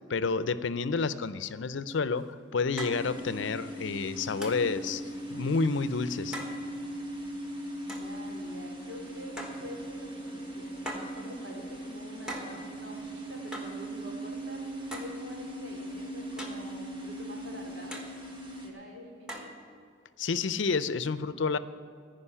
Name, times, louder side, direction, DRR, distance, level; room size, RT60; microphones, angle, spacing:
voice 1, 0.1-5.0 5.3-6.4 20.2-21.6, left 4 dB, 70° left, 14 dB, 0.5 m, -29 dB
sound 1, 1.9-2.0 2.8-3.1 4.4-4.7 6.3-6.6 7.9-8.1 9.4-9.7 10.9-11.2 12.3-12.6 13.5-13.8 14.9-15.2 16.4-16.7 17.9-18.1 19.3-19.6, equal, 5° right, 1.3 m, -40 dB
sound 2, 2.9-18.7, right 1 dB, 25° right, 1.6 m, -39 dB
voice 2, 7.9-18.0 18.6-19.5, left 1 dB, 90° right, -1 dB, 3.0 m, -46 dB
15.5 x 5.3 x 9.8 m, 2.3 s
head